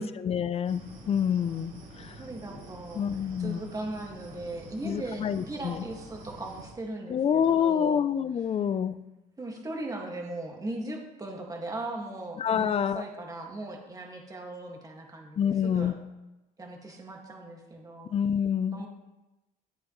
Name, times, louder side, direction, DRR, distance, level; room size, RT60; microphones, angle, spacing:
voice 1, 0.0-1.7 3.0-3.6 4.8-5.7 7.1-9.0 12.4-13.0 15.4-16.0 18.1-18.8, left 8 dB, 35° left, 14 dB, 0.5 m, -27 dB
sound 1, 0.6-6.7, right 1 dB, 55° right, 3.9 m, -47 dB
voice 2, 2.2-3.0 3.4-8.1 9.4-16.0 16.6-18.1 18.7-18.9, right 2 dB, 20° right, 1 dB, 2.0 m, -38 dB
12.5 x 8.7 x 3.2 m, 1.0 s
cardioid pair, 110°, 17 cm